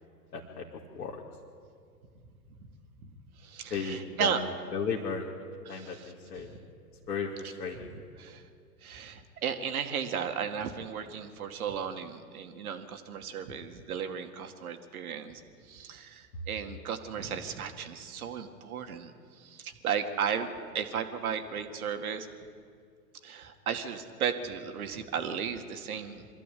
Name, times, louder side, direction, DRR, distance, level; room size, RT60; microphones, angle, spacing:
voice 1, 0.3-0.7 0.9-1.2 3.7-6.5 7.1-7.9 16.3-16.4, left 5 dB, 75° left, -2 dB, 2.4 m, -35 dB
voice 2, 3.4-4.4 5.7-6.1 6.5-6.6 8.2-8.5 8.8-22.3 23.2-26.3, right 7 dB, 60° right, 7 dB, 2.2 m, -35 dB
23.5 x 14.5 x 8.5 m, 2.2 s
hypercardioid pair, 120°, 49 cm